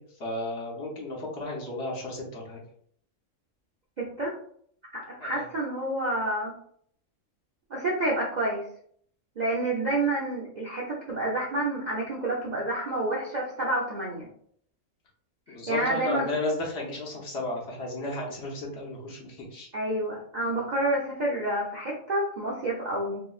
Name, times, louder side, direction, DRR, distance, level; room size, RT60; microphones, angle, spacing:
voice 1, 0.0-2.6 5.2-5.5 15.5-19.7, left 2 dB, 55° left, -2 dB, 1.0 m, -34 dB
voice 2, 4.0-4.3 4.9-6.5 7.7-8.6 9.4-14.3 15.5-16.3 19.7-23.2, right 1 dB, 50° right, -5 dB, 0.5 m, -29 dB
3.0 x 3.0 x 2.3 m, 0.63 s
omnidirectional pair, 1.4 m